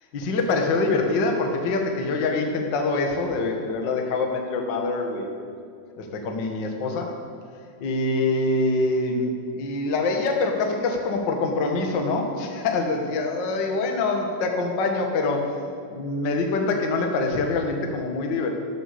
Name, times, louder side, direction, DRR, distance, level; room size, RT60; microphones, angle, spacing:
voice 1, 0.1-5.3 6.0-7.2 7.8-15.6 15.9-18.5, left 3 dB, 45° left, 2 dB, 1.5 m, -25 dB
14.0 x 11.5 x 7.0 m, 2.4 s
omnidirectional pair, 4.3 m